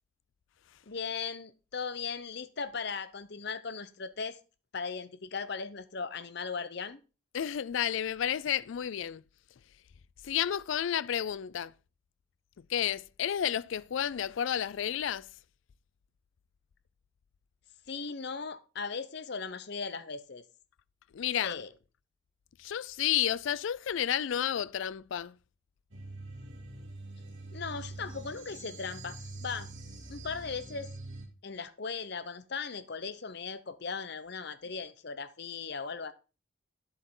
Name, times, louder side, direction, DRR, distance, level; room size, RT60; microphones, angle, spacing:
voice 1, 0.9-4.4 4.7-7.0 17.9-20.4 21.4-21.7 27.5-29.7 30.1-30.9 31.4-36.1, left 5 dB, 55° left, 0.8 m, -38 dB
voice 2, 7.3-9.2 10.2-11.7 12.6-15.3 21.1-21.6 22.6-25.4, left 10 dB, 70° left, 0.4 m, -31 dB
sound 1, 25.9-31.3, right 2 dB, 75° right, 2.6 m, -44 dB
10.0 x 7.7 x 3.7 m
head